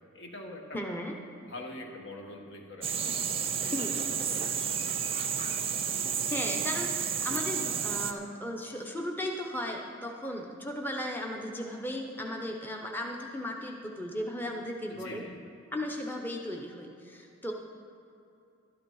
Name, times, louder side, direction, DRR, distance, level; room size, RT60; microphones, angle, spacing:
voice 1, 0.1-0.8 1.4-4.9 14.9-15.4, left 1 dB, 60° left, 1 dB, 1.5 m, -45 dB
voice 2, 0.7-1.1 3.7-3.9 6.3-15.2 15.7-17.5, left 1 dB, 10° left, 1 dB, 0.7 m, -36 dB
sound 1, 2.8-8.1, right 7 dB, 30° right, 0.6 m, -31 dB
12.0 x 12.0 x 4.7 m, 2.7 s
head